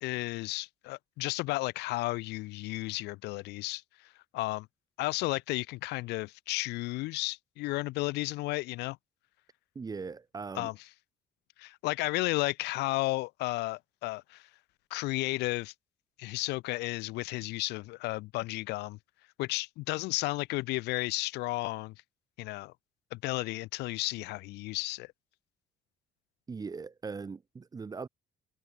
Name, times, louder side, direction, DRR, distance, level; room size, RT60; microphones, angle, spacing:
voice 1, 0.0-3.8 4.3-4.7 5.0-9.0 10.6-10.7 11.6-14.4 14.9-15.7 16.2-19.0 19.4-21.9 22.4-22.7 23.1-25.1, left 21 dB, 85° left, 0.5 m, -33 dB
voice 2, 9.7-10.7 26.5-28.1, right 5 dB, 20° right, 0.7 m, -40 dB
cardioid pair, 110°, 17 cm